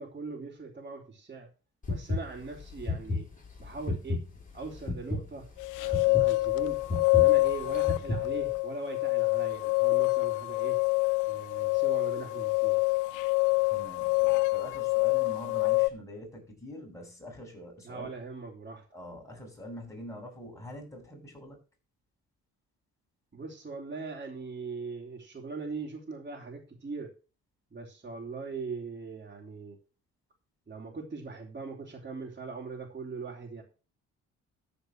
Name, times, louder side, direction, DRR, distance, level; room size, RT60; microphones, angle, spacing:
voice 1, 0.0-1.5 1.9-3.3 3.6-4.2 4.5-5.5 5.8-6.8 7.1-10.8 11.3-12.8 17.8-18.8 23.3-27.1 27.7-29.8 30.7-33.6, right 4 dB, 30° right, -3 dB, 3.6 m, -40 dB
sound 1, 1.8-8.6, left 2 dB, 25° left, 5.5 m, -34 dB
sound 2, 5.6-15.9, left 25 dB, 90° left, 0.5 m, -26 dB
voice 2, 13.7-18.1 18.9-21.6, equal, 10° left, 0 dB, 7.7 m, -44 dB
14.0 x 5.3 x 6.2 m, 0.34 s
cardioid pair, 90°, 30 cm